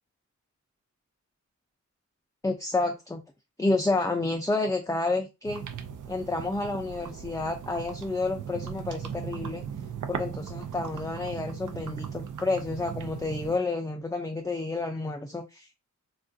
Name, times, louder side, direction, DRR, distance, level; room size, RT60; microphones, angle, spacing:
voice 1, 2.4-3.2 3.6-5.7 6.1-9.6 10.1-15.7, left 2 dB, 10° left, 0.4 m, -30 dB
sound 1, 5.4-13.6, right 8 dB, 85° right, 0.5 m, -38 dB
3.5 x 2.4 x 2.6 m
wide cardioid pair, 95°, 30 cm